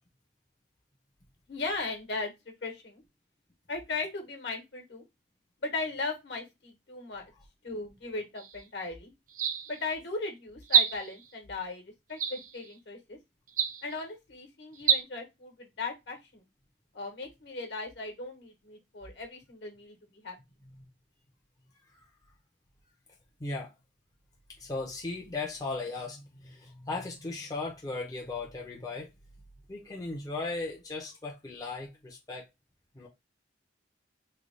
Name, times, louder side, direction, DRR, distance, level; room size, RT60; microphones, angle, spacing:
voice 1, 1.5-3.0 3.7-5.0 5.6-7.2 7.6-9.1 9.7-11.8 12.1-13.2 13.8-16.4 16.9-20.3, left 3 dB, 65° left, 1.1 m, -37 dB
sound 1, 8.4-8.6 9.3-9.9 10.7-11.3 12.2-12.7 13.5-14.0 14.8-15.0, right 7 dB, 45° right, 0.4 m, -28 dB
voice 2, 23.4-23.7 24.5-29.1 29.7-32.5 32.9-33.1, left 3 dB, 20° left, 0.6 m, -37 dB
3.2 x 2.3 x 3.7 m
head